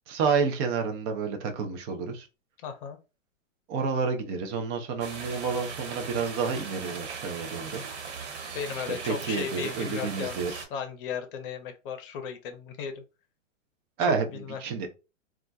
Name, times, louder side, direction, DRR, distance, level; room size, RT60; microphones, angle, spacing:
voice 1, 0.1-2.3 3.7-7.8 8.9-10.6 14.0-14.9, right 5 dB, 20° right, 0.4 m, -29 dB
voice 2, 2.6-3.0 8.5-13.0 14.0-14.6, left 7 dB, 45° left, 0.7 m, -36 dB
sound 1, 5.0-10.6, right 5 dB, 60° right, 1.4 m, -39 dB
2.3 x 2.1 x 3.9 m
hypercardioid pair, 125°, 39 cm